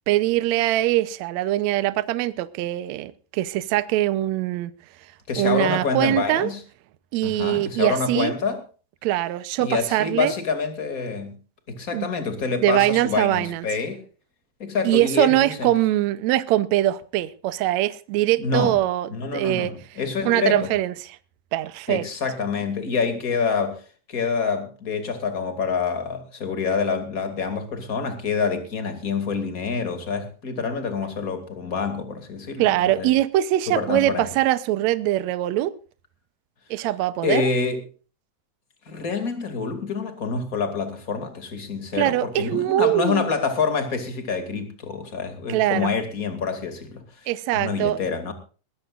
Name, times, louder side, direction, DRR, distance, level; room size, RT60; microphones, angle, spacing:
voice 1, 0.1-4.7 5.4-6.5 7.1-8.3 9.0-10.3 11.9-12.1 12.6-13.6 14.8-19.7 20.2-20.9 21.5-22.0 32.6-35.7 36.7-37.4 42.0-43.3 45.5-45.9 47.3-48.0, right 14 dB, 75° right, 1.7 m, -22 dB
voice 2, 5.3-6.6 7.2-8.6 9.6-11.4 11.7-14.0 14.6-15.7 18.4-18.8 19.1-20.7 21.9-33.1 33.7-34.3 37.2-37.8 38.9-48.3, left 5 dB, 25° left, 2.5 m, -27 dB
21.5 x 16.0 x 2.5 m
omnidirectional pair, 3.9 m